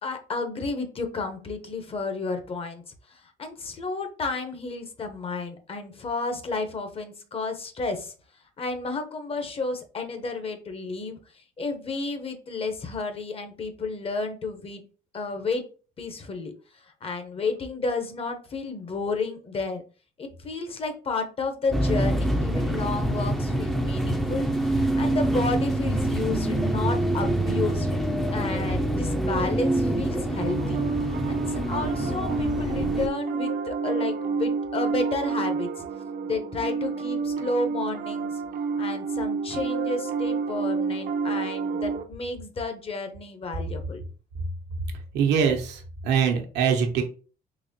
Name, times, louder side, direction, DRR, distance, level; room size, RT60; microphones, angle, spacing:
voice 1, 0.0-2.8 3.1-8.1 8.6-14.8 15.1-15.6 16.0-16.5 17.0-19.8 20.2-28.0 28.3-30.8 31.3-35.8 36.2-38.4 38.8-44.0, left 3 dB, 35° left, 7 dB, 0.8 m, -31 dB
sound 1, 21.7-33.1, right 1 dB, ahead, 0.5 m, -26 dB
Piano, 29.6-42.0, right 5 dB, 60° right, 0.6 m, -29 dB
voice 2, 45.1-47.0, right 7 dB, 85° right, 3 dB, 1.0 m, -23 dB
4.0 x 2.9 x 2.8 m, 0.36 s
cardioid pair, 110°, 17 cm